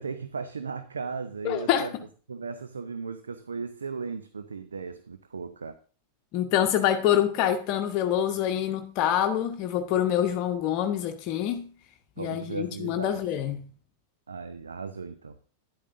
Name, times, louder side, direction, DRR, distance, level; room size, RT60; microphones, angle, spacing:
voice 1, 0.0-1.9 2.3-5.8 12.2-13.2 14.3-15.4, right 5 dB, 75° right, 0.7 m, -36 dB
voice 2, 1.4-1.9 6.3-11.7 12.2-13.7, left 10 dB, 40° left, 0.9 m, -26 dB
11.5 x 10.5 x 2.6 m
figure-of-eight pair, 90°, 0 cm